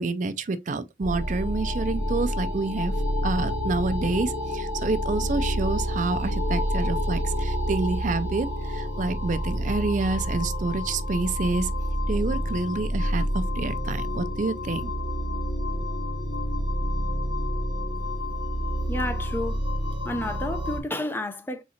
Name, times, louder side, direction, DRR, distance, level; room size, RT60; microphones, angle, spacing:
voice 1, 0.0-2.9 3.2-11.7 12.1-14.9, right 3 dB, 45° right, 0.4 m, -28 dB
sound 1, 1.0-20.8, equal, 90° left, 2.9 m, -28 dB
voice 2, 18.9-19.6 20.0-21.6, left 1 dB, 15° left, 0.5 m, -31 dB
4.2 x 3.6 x 2.8 m
head